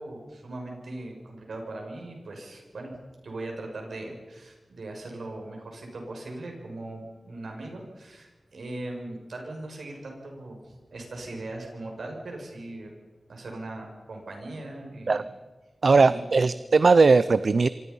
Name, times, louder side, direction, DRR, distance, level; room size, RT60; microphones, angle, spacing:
voice 1, 0.0-12.9 13.3-15.2 15.9-16.6, right 2 dB, 90° right, 1 dB, 6.7 m, -39 dB
voice 2, 15.8-17.7, right 4 dB, 60° right, 14 dB, 0.6 m, -19 dB
27.5 x 25.5 x 5.6 m, 1.3 s
wide cardioid pair, 95°, 0 cm